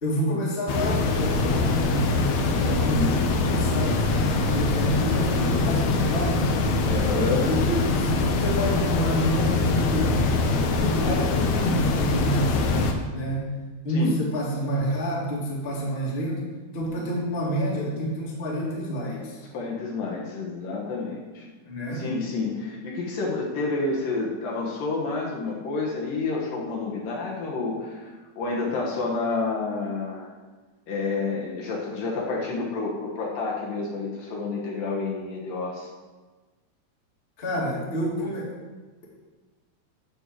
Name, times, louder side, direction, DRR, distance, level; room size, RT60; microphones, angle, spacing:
voice 1, 0.0-2.2 2.6-6.5 7.5-10.3 10.7-13.5 13.8-16.4 16.7-19.4 21.6-22.0 37.4-38.5, equal, 20° left, -5 dB, 1.7 m, -28 dB
sound 1, 0.7-12.9, left 3 dB, 80° left, 1.6 m, -23 dB
voice 2, 2.8-3.2 6.8-7.5 13.9-14.2 19.5-21.5 21.9-30.3 30.9-35.9, left 3 dB, 65° left, -3 dB, 2.7 m, -29 dB
11.5 x 4.5 x 7.4 m, 1.3 s
omnidirectional pair, 4.6 m